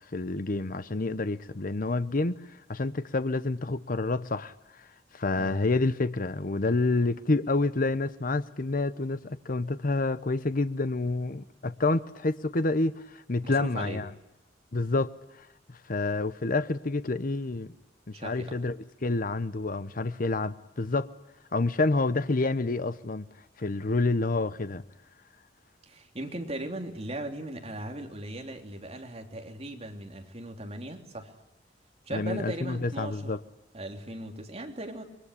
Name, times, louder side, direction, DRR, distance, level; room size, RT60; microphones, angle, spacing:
voice 1, 0.1-4.5 4.8-4.9 5.1-14.1 14.7-15.2 15.7-17.7 18.1-18.8 19.0-21.1 21.5-23.3 23.6-24.8 32.1-33.4, left 2 dB, 50° left, 0.9 m, -28 dB
voice 2, 13.4-14.0 18.1-18.6 25.9-31.3 32.0-33.3 33.7-35.0, right 1 dB, 35° right, 3.3 m, -38 dB
25.0 x 23.0 x 9.8 m
head